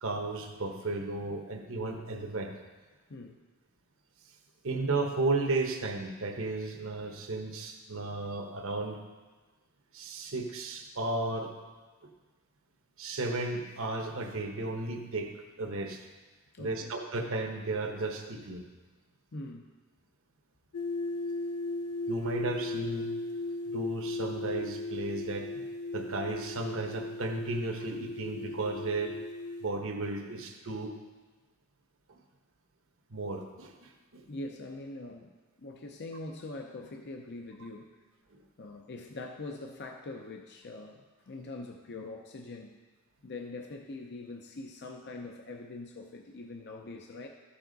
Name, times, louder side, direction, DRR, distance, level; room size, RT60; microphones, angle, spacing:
voice 1, 0.0-2.5 4.6-9.0 9.9-11.5 12.0-12.1 13.0-15.3 15.6-16.0 16.6-18.6 22.1-23.1 23.7-25.6 25.9-29.1 29.6-31.0 32.1-32.2 33.1-34.2 38.3-38.4, right 2 dB, 65° right, 3 dB, 1.1 m, -34 dB
voice 2, 3.1-3.4 16.5-16.9 19.3-19.7 34.3-38.0 38.6-42.8 43.2-47.3, left 2 dB, 50° left, 2 dB, 0.6 m, -43 dB
sound 1, 20.7-29.7, left 2 dB, 90° left, 0.7 m, -37 dB
13.5 x 7.0 x 4.0 m, 1.3 s
head